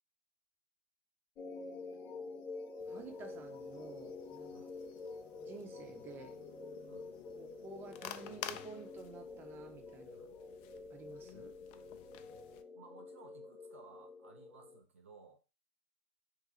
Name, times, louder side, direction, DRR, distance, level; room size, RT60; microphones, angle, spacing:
sound 1, 1.4-14.8, left 3 dB, 35° left, 0.8 m, -48 dB
sound 2, 2.8-12.6, left 12 dB, 50° left, 0.3 m, -53 dB
voice 1, 2.9-4.7 5.4-6.4 7.4-10.3 10.9-11.5, right 4 dB, 30° right, 5 dB, 0.7 m, -52 dB
voice 2, 12.7-15.4, right 4 dB, 80° right, 3 dB, 0.7 m, -58 dB
3.0 x 2.3 x 3.7 m, 0.30 s
hypercardioid pair, 100°, 7 cm